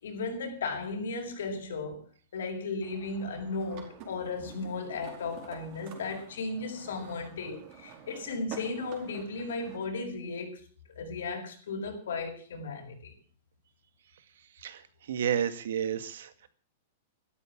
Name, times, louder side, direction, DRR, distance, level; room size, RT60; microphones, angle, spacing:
voice 1, 0.0-2.0 2.3-10.6 10.9-13.1, left 3 dB, 85° left, 6.1 m, -35 dB
sound 1, 2.8-9.8, right 8 dB, 35° right, 4.4 m, -49 dB
voice 2, 14.5-16.5, right 9 dB, 75° right, 2.0 m, -32 dB
13.5 x 12.5 x 7.4 m
supercardioid pair, 170°, 0 cm